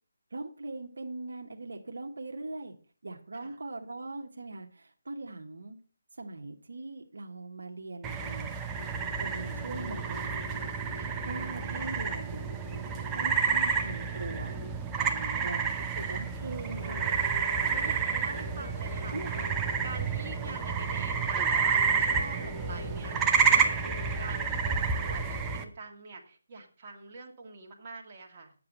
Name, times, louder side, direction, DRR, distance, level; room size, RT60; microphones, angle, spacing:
voice 1, 0.3-2.7 3.0-5.8 6.2-8.5 9.2-10.7 11.2-12.4 13.1-14.6 15.0-17.2 18.5-18.6 19.1-19.3, right 2 dB, 75° right, 2 dB, 1.2 m, -41 dB
sound 1, 8.0-25.6, right 6 dB, 10° right, 0.7 m, -30 dB
sound 2, 8.7-14.7 16.7-25.6, left 2 dB, 65° left, 2.2 m, -45 dB
voice 2, 10.9-11.9 15.3-16.2 17.7-19.5 19.8-24.8 25.1-28.5, right 4 dB, 35° right, 0 dB, 1.7 m, -46 dB
8.5 x 7.0 x 5.1 m, 0.40 s
figure-of-eight pair, 160°, 0 cm